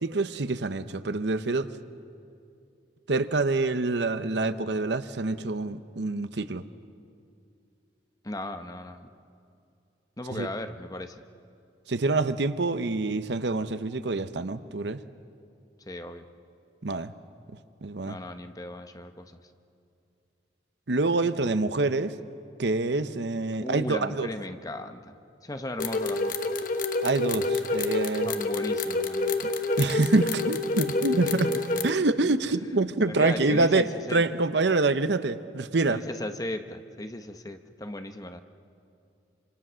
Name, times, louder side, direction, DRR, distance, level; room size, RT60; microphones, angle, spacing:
voice 1, 0.0-1.7 3.1-6.6 10.3-10.5 11.9-15.0 16.8-17.1 17.8-18.2 20.9-22.1 22.6-24.3 27.0-28.3 29.8-31.5 31.8-36.0, right 3 dB, 70° right, 12 dB, 0.8 m, -26 dB
voice 2, 8.2-9.1 10.2-11.2 15.9-16.2 18.0-19.4 23.6-25.2 25.4-26.3 28.2-29.4 31.2-31.9 33.0-34.2 35.9-38.4, left 1 dB, 20° left, 8 dB, 0.9 m, -36 dB
sound 1, 25.8-31.9, left 2 dB, 45° left, 1.1 m, -28 dB
26.5 x 26.5 x 6.3 m, 2.6 s
head